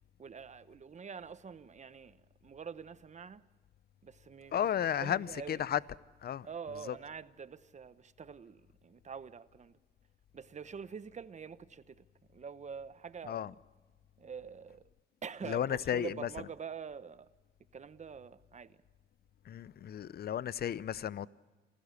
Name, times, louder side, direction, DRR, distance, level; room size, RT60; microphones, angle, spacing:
voice 1, 0.2-3.4 4.0-4.7 5.0-5.6 6.4-9.8 10.3-12.1 12.3-13.5 14.2-14.8 15.2-17.3 17.7-18.8, right 6 dB, 35° right, 1.0 m, -46 dB
voice 2, 4.5-5.8 6.2-6.5 6.9-7.0 13.3-13.5 15.5-16.1 19.5-21.3, left 10 dB, 50° left, 0.7 m, -33 dB
27.0 x 16.0 x 8.2 m
cardioid pair, 90°, 20 cm